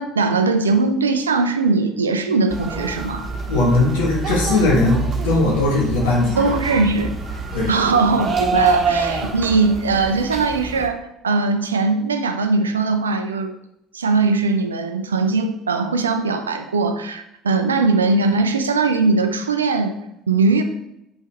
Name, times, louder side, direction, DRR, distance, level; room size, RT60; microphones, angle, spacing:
voice 1, 0.0-3.3 6.4-7.1 7.7-13.5 13.9-20.0 20.3-20.6, right 3 dB, 80° right, 7 dB, 0.5 m, -20 dB
sound 1, 2.5-10.9, right 4 dB, 35° right, 1.4 m, -26 dB
voice 2, 3.5-6.5 7.5-7.7, left 2 dB, 70° left, -3 dB, 2.0 m, -19 dB
8.1 x 5.4 x 3.2 m, 0.83 s
figure-of-eight pair, 60°, 0 cm